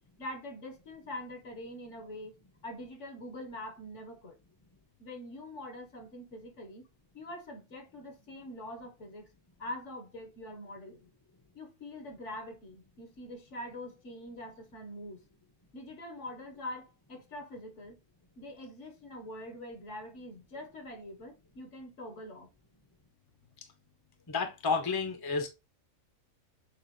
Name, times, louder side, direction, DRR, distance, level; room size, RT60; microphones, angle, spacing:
voice 1, 0.2-2.3 2.6-4.4 5.0-6.8 7.1-9.3 9.6-11.1 11.5-15.2 15.7-18.0 18.4-22.5, left 1 dB, 60° left, 1.4 m, -44 dB
voice 2, 24.3-25.5, left 5 dB, 20° left, 0.7 m, -31 dB
6.6 x 2.5 x 3.0 m
omnidirectional pair, 1.4 m